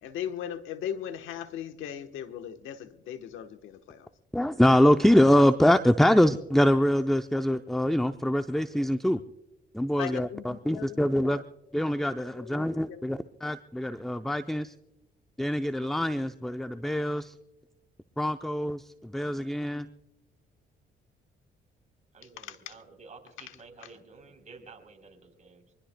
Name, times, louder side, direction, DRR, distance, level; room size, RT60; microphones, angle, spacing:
voice 1, 0.0-4.1 10.0-11.4 12.4-13.0 22.4-22.7 23.8-23.9, left 9 dB, 85° left, 8 dB, 1.2 m, -38 dB
voice 2, 4.3-9.2 9.7-11.4 11.7-14.7 15.4-17.3 18.2-19.9, equal, ahead, 9 dB, 0.5 m, -24 dB
voice 3, 22.1-25.7, right 4 dB, 35° right, 4 dB, 3.8 m, -51 dB
25.0 x 20.5 x 2.2 m, 0.93 s
cardioid pair, 90°, 20 cm